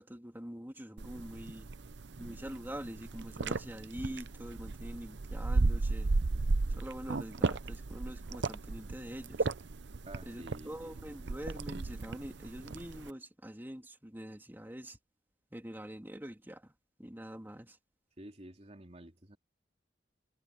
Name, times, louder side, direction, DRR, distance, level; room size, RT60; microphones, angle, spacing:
voice 1, 0.0-1.7 2.2-6.1 6.7-9.5 10.2-15.0 15.5-16.7 17.0-17.8, equal, 10° right, 2.8 m, -45 dB
sound 1, 1.0-13.1, right 3 dB, 65° right, 0.7 m, -35 dB
voice 2, 10.0-11.0 18.2-19.4, right 1 dB, 35° right, 3.0 m, -50 dB
head